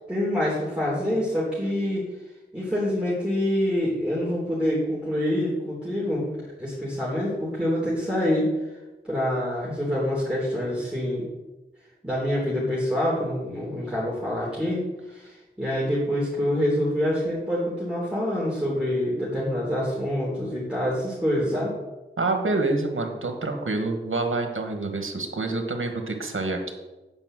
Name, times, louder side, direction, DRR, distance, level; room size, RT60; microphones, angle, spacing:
voice 1, 0.1-2.1 2.5-8.5 9.0-11.3 12.0-21.7, left 1 dB, 5° right, -7 dB, 3.4 m, -26 dB
voice 2, 22.2-26.7, right 2 dB, 85° right, 4 dB, 1.4 m, -27 dB
8.9 x 5.4 x 7.5 m, 1.1 s
wide cardioid pair, 55°, 20 cm